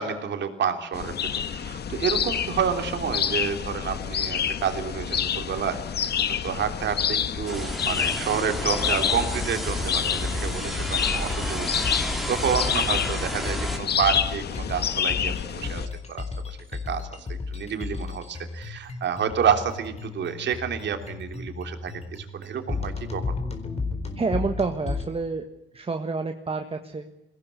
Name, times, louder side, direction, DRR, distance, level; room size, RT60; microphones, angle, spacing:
voice 1, 0.0-6.1 6.4-15.8 16.1-16.6 16.9-23.4, right 7 dB, 65° right, 7 dB, 3.3 m, -29 dB
sound 1, 0.9-15.9, left 8 dB, 55° left, 1.3 m, -28 dB
sound 2, 7.5-13.8, right 1 dB, ahead, 3.2 m, -32 dB
sound 3, 8.9-25.1, left 4 dB, 30° left, 4.3 m, -34 dB
voice 2, 24.2-25.4 25.7-27.3, right 4 dB, 30° right, 6 dB, 1.6 m, -29 dB
21.5 x 17.5 x 8.3 m, 0.92 s
cardioid pair, 90°, 20 cm